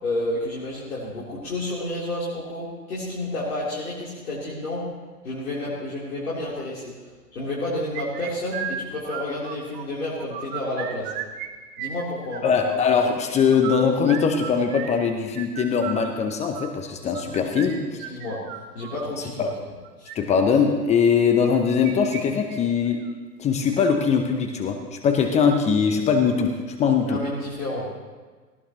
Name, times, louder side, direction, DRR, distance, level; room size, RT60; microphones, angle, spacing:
voice 1, 0.0-4.8 5.2-6.9 7.3-11.1 11.8-12.4 17.4-17.5 17.9-18.4 18.7-19.5 20.0-20.1 27.1-27.9, left 1 dB, 60° left, -7 dB, 3.8 m, -30 dB
sound 1, 7.9-9.8 10.2-11.5 11.7-12.8 13.5-19.1 19.8-20.2 21.4-22.2 22.5-22.6 23.0-23.1 23.7-24.1, right 9 dB, 30° right, 1.0 m, -35 dB
voice 2, 12.4-18.0 19.4-19.5 20.1-23.0 23.4-26.5 26.8-27.2, left 6 dB, 15° left, 4 dB, 0.8 m, -21 dB
18.0 x 17.5 x 3.1 m, 1.4 s
figure-of-eight pair, 110°, 48 cm